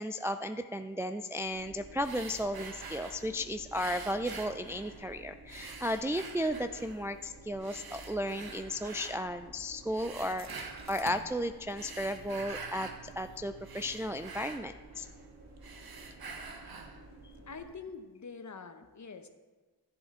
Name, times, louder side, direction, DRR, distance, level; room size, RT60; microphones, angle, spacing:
voice 1, 0.0-15.1, equal, 5° right, 8 dB, 0.3 m, -34 dB
sound 1, 1.4-17.7, right 2 dB, 75° right, 2.2 m, -53 dB
sound 2, 2.0-3.3 3.7-5.1 5.5-7.0 7.6-9.2 9.9-11.0 11.6-13.0 13.4-15.3 15.6-17.0, right 4 dB, 60° right, 1.2 m, -46 dB
sound 3, 6.6-6.7 7.7-14.6, right 5 dB, 40° right, 0.8 m, -55 dB
voice 2, 17.4-19.3, left 5 dB, 45° left, 8 dB, 1.0 m, -45 dB
14.0 x 8.0 x 3.8 m, 1.3 s
cardioid pair, 70°, 41 cm